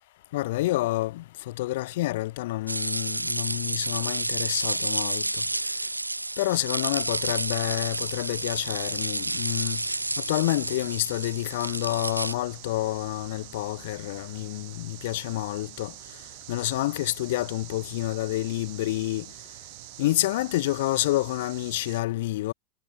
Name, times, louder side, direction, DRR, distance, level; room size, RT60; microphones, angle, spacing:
voice 1, 0.3-5.2 6.4-9.8 10.3-15.9 16.5-19.3 20.0-22.5, left 17 dB, 55° left, 3.9 m, -28 dB
sound 1, 2.7-12.3, right 2 dB, 85° right, 1.4 m, -30 dB
sound 2, 6.8-22.0, right 30 dB, 45° right, 6.7 m, -46 dB
figure-of-eight pair, 90°, 0 cm